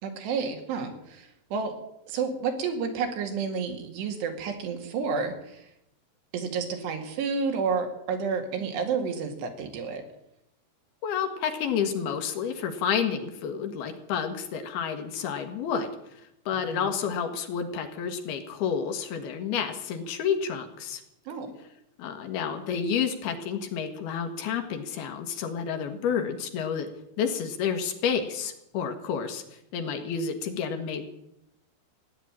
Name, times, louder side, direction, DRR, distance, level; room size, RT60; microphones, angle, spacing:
voice 1, 0.0-1.8 2.1-5.6 6.3-10.0 16.7-16.8 21.3-21.5, right 5 dB, 80° right, 5 dB, 4.2 m, -30 dB
voice 2, 11.0-15.9 16.5-21.0 22.0-26.9 27.2-29.4 29.7-31.1, left 7 dB, 70° left, 6 dB, 3.3 m, -30 dB
16.0 x 10.0 x 8.9 m, 0.82 s
omnidirectional pair, 4.8 m